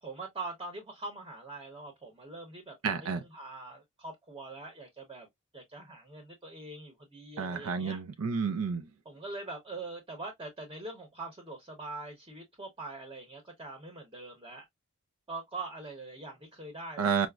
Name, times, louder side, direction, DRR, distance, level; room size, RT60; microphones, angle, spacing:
voice 1, 0.0-5.3 5.5-8.0 9.0-14.6 15.3-17.1, right 3 dB, 20° right, 0.8 m, -43 dB
voice 2, 2.8-3.2 7.4-8.8 17.0-17.3, right 6 dB, 85° right, 0.4 m, -30 dB
4.8 x 2.0 x 2.2 m
head